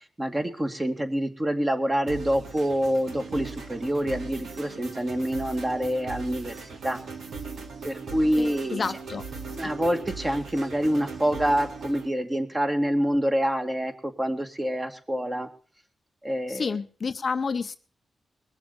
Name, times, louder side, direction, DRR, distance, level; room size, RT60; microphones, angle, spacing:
voice 1, 0.2-6.5 6.8-7.0 7.8-8.8 9.5-15.5 16.2-16.8, equal, 20° right, 5 dB, 2.3 m, -26 dB
sound 1, 2.1-12.1, right 4 dB, 75° right, 2.3 m, -39 dB
voice 2, 8.4-9.2 9.6-9.7 16.5-17.8, left 5 dB, 50° left, 10 dB, 0.7 m, -30 dB
21.0 x 7.1 x 6.8 m, 0.41 s
cardioid pair, 80°, 0 cm